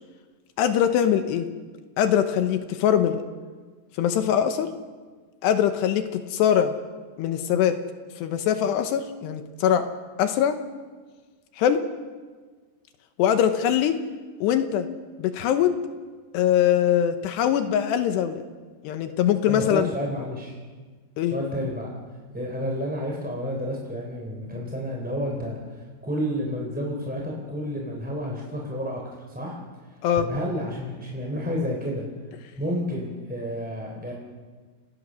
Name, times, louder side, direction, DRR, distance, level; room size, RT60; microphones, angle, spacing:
voice 1, 0.6-1.5 2.0-3.2 4.0-4.7 5.4-6.7 7.2-7.8 8.2-9.9 10.2-10.6 11.6-11.8 13.2-14.0 14.4-14.9 15.2-15.7 16.3-18.4 18.8-19.9 21.2-21.4 30.0-30.3, left 9 dB, 75° left, 8 dB, 2.6 m, -22 dB
voice 2, 19.5-20.6 21.3-21.9 22.3-25.6 26.0-29.6 30.2-32.1 32.5-34.1, equal, 5° right, -1 dB, 2.2 m, -30 dB
29.0 x 18.5 x 6.4 m, 1.5 s
omnidirectional pair, 5.9 m